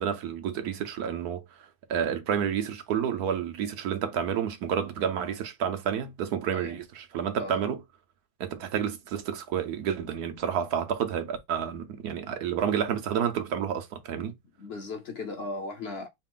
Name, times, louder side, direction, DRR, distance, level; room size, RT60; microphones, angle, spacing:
voice 1, 0.0-1.4 1.9-7.8 8.4-14.3, right 8 dB, 85° right, 1.3 m, -30 dB
voice 2, 7.4-7.7 14.6-16.1, left 3 dB, 55° left, 0.7 m, -37 dB
4.8 x 2.4 x 3.7 m
omnidirectional pair, 1.6 m